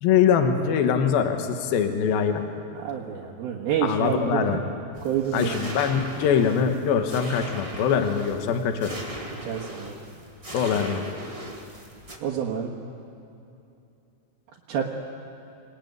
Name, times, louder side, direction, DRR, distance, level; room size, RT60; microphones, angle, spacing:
voice 1, 0.0-2.5 3.8-4.6 5.3-9.0 10.5-11.0, left 7 dB, 70° left, 6 dB, 3.1 m, -23 dB
voice 2, 2.8-4.6 5.0-5.5 9.5-10.0 12.2-12.7 14.7-14.8, right 9 dB, 75° right, -3 dB, 3.4 m, -28 dB
sound 1, 4.9-12.2, right 1 dB, 30° right, 0.6 m, -39 dB
25.0 x 19.5 x 9.4 m, 2.7 s
omnidirectional pair, 4.5 m